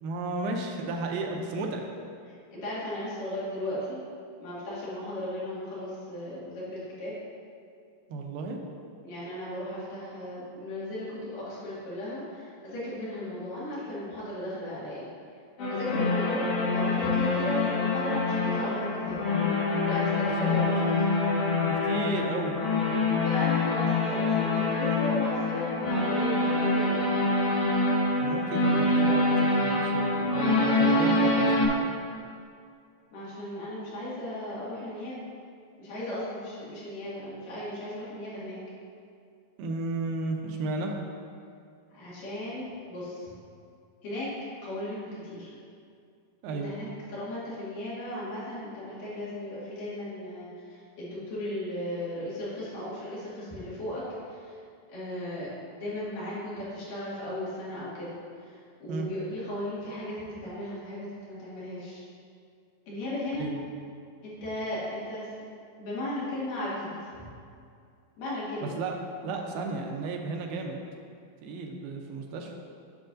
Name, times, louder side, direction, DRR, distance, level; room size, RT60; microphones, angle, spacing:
voice 1, 0.0-1.9 8.1-8.6 20.3-20.6 21.7-22.6 28.2-31.9 39.6-41.0 46.4-46.7 58.9-59.1 63.4-63.6 68.6-68.9 69.2-70.8 71.4-72.5, right 3 dB, 90° right, 2 dB, 2.5 m, -33 dB
voice 2, 2.5-4.0 4.4-7.1 9.0-15.1 15.7-19.2 19.9-21.1 23.2-27.0 33.1-35.2 35.8-38.6 41.9-43.3 44.0-44.3 44.6-45.5 46.5-54.0 54.3-54.6 54.9-55.5 55.8-58.6 58.8-62.0 62.9-63.5 64.2-65.3 65.8-67.1 68.2-68.8, left 1 dB, 65° left, -9 dB, 3.6 m, -36 dB
sound 1, 15.6-31.7, left 2 dB, 85° left, 1.3 m, -25 dB
10.0 x 6.4 x 2.6 m, 2.3 s
omnidirectional pair, 4.2 m